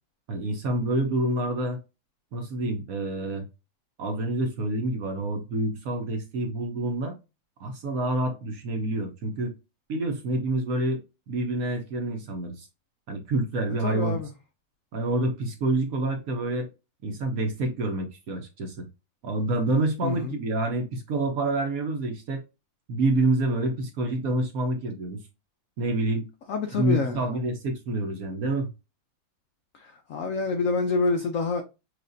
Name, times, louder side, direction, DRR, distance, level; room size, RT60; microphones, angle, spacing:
voice 1, 0.3-1.8 2.3-3.4 4.0-7.1 7.6-9.5 9.9-11.0 11.3-12.7 13.1-14.2 14.9-16.7 17.0-18.8 19.2-22.4 22.9-25.2 25.8-26.3 26.7-28.7, right 2 dB, 60° right, 1.0 m, -27 dB
voice 2, 13.8-14.3 20.0-20.3 26.5-27.2 29.7-31.6, left 4 dB, 85° left, 0.7 m, -27 dB
6.3 x 2.5 x 2.5 m
omnidirectional pair, 2.1 m